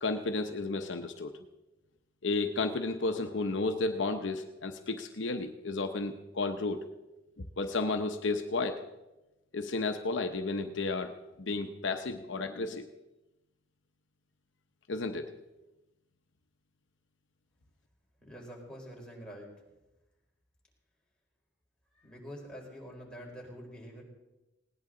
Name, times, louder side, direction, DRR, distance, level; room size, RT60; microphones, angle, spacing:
voice 1, 0.0-1.4 2.2-6.9 7.6-8.8 9.5-12.9 14.9-15.3, left 3 dB, 70° left, 6 dB, 0.9 m, -32 dB
voice 2, 18.2-19.6 21.9-24.0, equal, 5° left, -2 dB, 4.4 m, -46 dB
19.5 x 18.0 x 3.9 m, 1.0 s
head